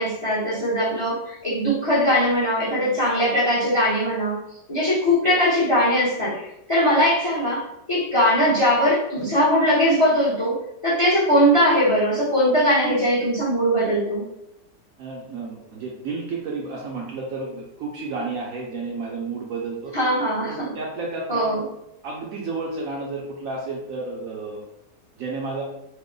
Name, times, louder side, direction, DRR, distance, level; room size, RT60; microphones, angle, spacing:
voice 1, 0.0-4.4 4.7-14.2 19.9-20.7 21.3-21.6, equal, 30° left, -7 dB, 0.6 m, -20 dB
voice 2, 15.0-19.9 20.4-21.5 22.0-24.6 25.2-25.6, right 3 dB, 70° right, -2 dB, 0.9 m, -31 dB
3.1 x 2.1 x 3.6 m, 0.84 s
omnidirectional pair, 1.8 m